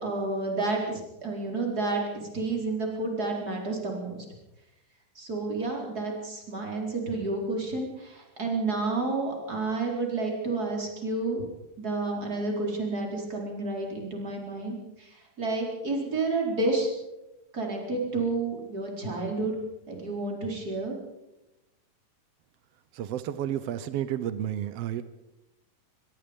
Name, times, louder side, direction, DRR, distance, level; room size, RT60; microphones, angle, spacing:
voice 1, 0.0-4.2 5.1-11.4 11.8-16.9 17.5-19.5 19.9-21.0, right 3 dB, 25° right, 0 dB, 4.7 m, -30 dB
voice 2, 22.9-25.0, right 11 dB, 80° right, 13 dB, 1.4 m, -31 dB
24.5 x 21.5 x 5.3 m, 0.96 s
omnidirectional pair, 4.0 m